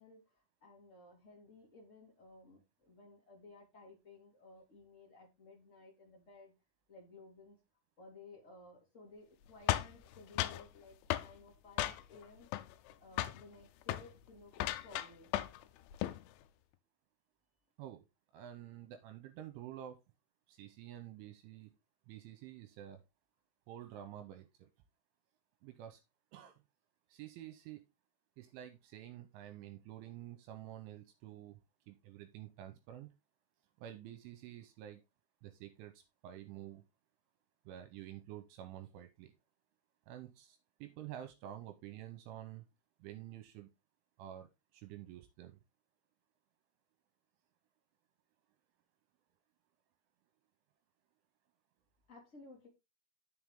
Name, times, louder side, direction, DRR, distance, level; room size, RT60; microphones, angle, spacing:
voice 1, 0.0-6.5 6.9-7.6 8.0-12.5 13.0-14.5 14.8-15.3 52.1-52.7, left 2 dB, 60° left, -1 dB, 0.7 m, -57 dB
sound 1, 9.7-10.7 11.1-11.3 11.8-12.2 12.5-12.9 13.2-13.4 13.8-14.1 14.5-15.6 15.9-16.2, left 14 dB, 80° left, 2.9 m, -36 dB
voice 2, 18.3-20.0 20.5-21.7 22.1-23.0 23.7-24.7 25.6-26.0 26.3-26.6 27.1-27.8 28.4-31.6 31.9-33.1 33.8-35.0 35.4-36.9 37.7-39.3 40.1-42.7 43.0-43.7 44.2-45.6, right 12 dB, 80° right, 9 dB, 3.1 m, -49 dB
9.5 x 6.9 x 3.6 m, 0.24 s
omnidirectional pair, 5.9 m